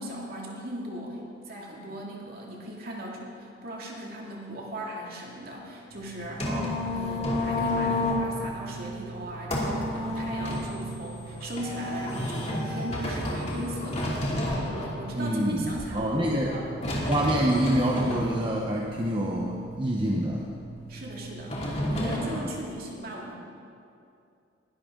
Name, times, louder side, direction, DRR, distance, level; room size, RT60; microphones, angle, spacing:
voice 1, 0.0-6.6 6.9-14.2 14.5-16.7 20.9-23.3, right 1 dB, 50° right, -2 dB, 2.5 m, -38 dB
sound 1, 5.9-22.4, left 1 dB, 35° left, 2.7 m, -32 dB
voice 2, 6.4-6.8 15.1-16.5 17.1-20.4 22.3-22.5, right 1 dB, 25° right, -2 dB, 1.0 m, -27 dB
21.0 x 11.5 x 3.8 m, 2.5 s
head